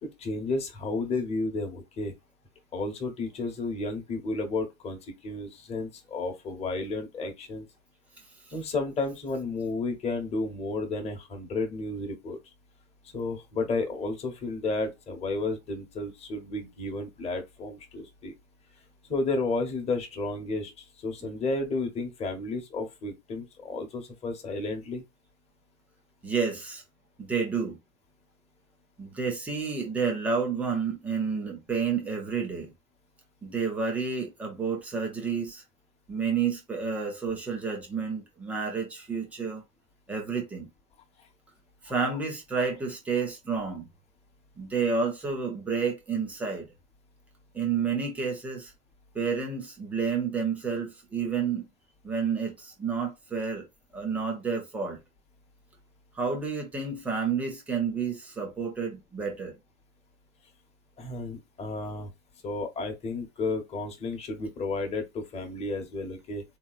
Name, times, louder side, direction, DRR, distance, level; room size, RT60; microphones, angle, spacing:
voice 1, 0.0-2.1 2.7-7.7 8.5-12.4 13.1-18.3 19.1-25.0 41.9-42.2 61.0-62.1 62.4-66.4, left 3 dB, 15° left, 1.0 m, -32 dB
voice 2, 26.2-26.8 27.2-27.8 29.0-32.7 33.4-35.6 36.1-39.6 40.1-40.7 41.8-43.9 44.6-46.7 47.5-48.7 49.1-51.6 52.0-53.6 53.9-55.0 56.1-59.5, right 5 dB, 5° right, 0.3 m, -30 dB
3.5 x 2.9 x 2.4 m
hypercardioid pair, 120°, 41 cm